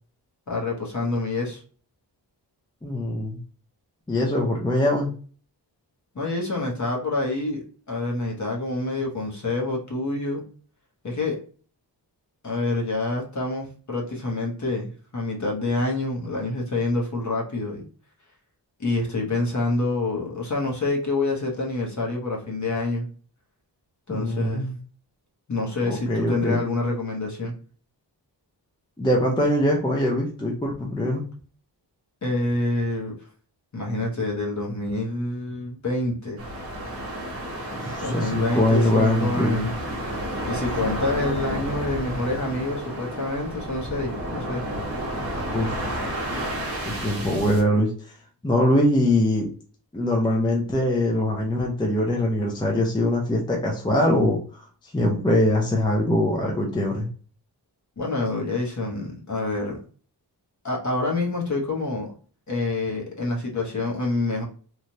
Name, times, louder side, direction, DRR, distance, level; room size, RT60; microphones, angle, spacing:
voice 1, 0.5-1.6 6.1-10.4 11.0-11.4 12.4-17.8 18.8-23.1 24.1-24.7 25.5-27.5 32.2-33.1 33.7-36.4 38.0-39.7 40.4-44.7 58.0-59.8 60.6-62.1 62.5-64.4, left 2 dB, 40° left, -1 dB, 0.9 m, -27 dB
voice 2, 2.8-3.4 4.1-5.1 24.1-24.7 25.9-26.6 29.0-31.2 37.7-39.6 45.5-46.0 46.8-47.9 48.4-49.5 49.9-54.6 54.9-57.1, left 1 dB, 10° left, -1 dB, 0.5 m, -22 dB
sound 1, 36.4-47.6, right 1 dB, 35° right, 0.9 m, -31 dB
3.1 x 2.3 x 2.6 m, 0.41 s
wide cardioid pair, 150°, 42 cm